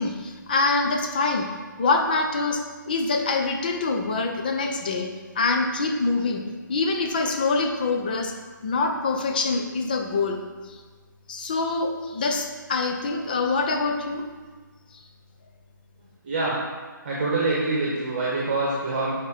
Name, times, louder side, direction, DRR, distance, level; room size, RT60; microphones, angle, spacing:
voice 1, 0.0-1.5 1.8-2.6 2.9-6.4 6.7-8.3 8.6-10.4 10.7-10.8 11.3-14.2, left 3 dB, 25° left, 3 dB, 0.6 m, -25 dB
voice 2, 16.2-16.5 17.0-19.1, right 3 dB, 30° right, -6 dB, 1.4 m, -25 dB
6.5 x 5.1 x 5.0 m, 1.4 s
hypercardioid pair, 170°, 11 cm